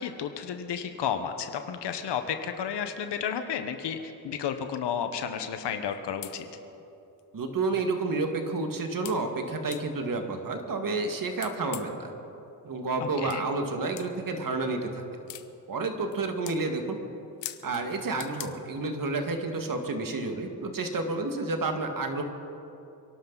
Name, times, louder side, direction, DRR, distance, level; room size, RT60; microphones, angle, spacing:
voice 1, 0.0-4.0 4.2-6.4 13.0-13.4, left 8 dB, 75° left, 7 dB, 1.3 m, -32 dB
sound 1, 5.9-6.0 6.2-6.4 7.2-7.3 7.8-7.9 9.1-9.2 9.7-9.8 11.4-12.0 13.3-13.4 14.0-14.1 15.3-15.5 16.0-16.2 16.5-16.6 17.4-17.8 18.2-18.5, left 14 dB, 90° left, 0.8 m, -40 dB
voice 2, 7.3-12.1 12.6-15.0 15.7-17.0 17.6-22.2, right 3 dB, 50° right, 5 dB, 2.1 m, -30 dB
27.5 x 12.0 x 4.1 m, 2.8 s
cardioid pair, 65°, 42 cm